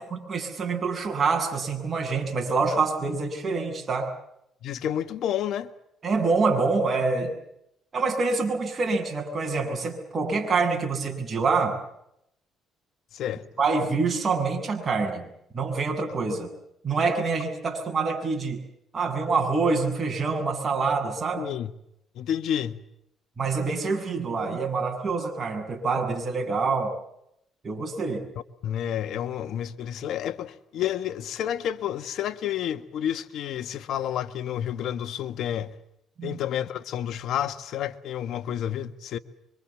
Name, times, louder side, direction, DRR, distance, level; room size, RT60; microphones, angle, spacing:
voice 1, 0.1-4.1 6.0-7.3 7.9-11.8 13.6-15.3 15.5-16.5 16.8-18.6 18.9-21.4 23.4-26.9 27.6-28.2 36.2-36.4, right 4 dB, 35° right, 7.7 m, -26 dB
voice 2, 4.6-5.7 13.1-13.4 21.4-21.7 22.1-22.8 28.6-35.7 36.2-39.2, left 10 dB, 70° left, 1.4 m, -30 dB
25.5 x 24.5 x 7.3 m
cardioid pair, 95°, 0 cm